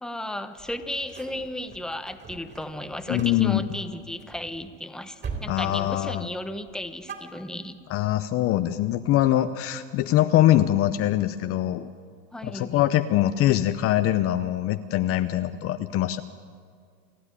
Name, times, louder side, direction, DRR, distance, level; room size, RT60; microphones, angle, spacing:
voice 1, 0.0-7.8 12.3-12.7, left 1 dB, ahead, 9 dB, 1.0 m, -34 dB
sound 1, 0.6-4.8 5.2-5.6 5.9-6.3 6.6-7.9, right 5 dB, 30° right, 3.4 m, -41 dB
voice 2, 3.1-3.6 5.5-6.3 7.9-11.9 12.4-16.2, left 13 dB, 35° left, 10 dB, 0.7 m, -23 dB
28.5 x 9.7 x 9.8 m, 2.1 s
supercardioid pair, 115°, 38 cm